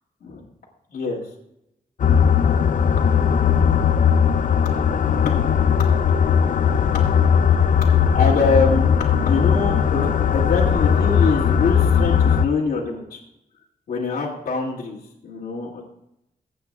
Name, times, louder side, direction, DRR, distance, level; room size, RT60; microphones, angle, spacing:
voice 1, 0.9-1.3 8.1-8.9 9.2-13.2 13.9-15.8, left 4 dB, 90° left, -6 dB, 2.4 m, -24 dB
sound 1, 2.0-12.5, left 7 dB, 60° left, 0.6 m, -18 dB
24.0 x 8.4 x 2.4 m, 0.82 s
wide cardioid pair, 145°, 15 cm